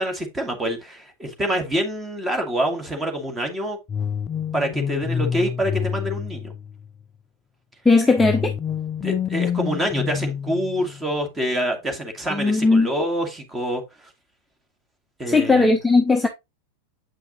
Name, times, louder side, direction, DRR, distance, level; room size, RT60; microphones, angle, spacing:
voice 1, 0.0-3.8 4.5-6.5 9.0-13.8 15.2-15.7, equal, 15° right, 2.0 m, -26 dB
sound 1, 3.9-7.0 8.2-11.1, left 7 dB, 25° left, 0.4 m, -28 dB
voice 2, 7.8-8.5 12.3-12.9 15.3-16.3, left 3 dB, 5° left, 0.8 m, -17 dB
8.2 x 5.6 x 2.8 m
figure-of-eight pair, 90°, 0 cm